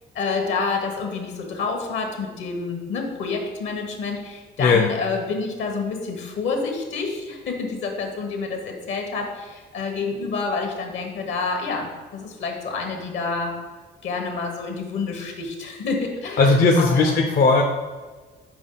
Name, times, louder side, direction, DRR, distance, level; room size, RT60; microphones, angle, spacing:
voice 1, 0.1-13.5 14.0-17.2, left 4 dB, 70° left, 2 dB, 1.4 m, -28 dB
voice 2, 16.4-17.6, left 3 dB, 50° left, 1 dB, 0.6 m, -17 dB
6.0 x 5.0 x 3.9 m, 1.4 s
cardioid pair, 90°, 20 cm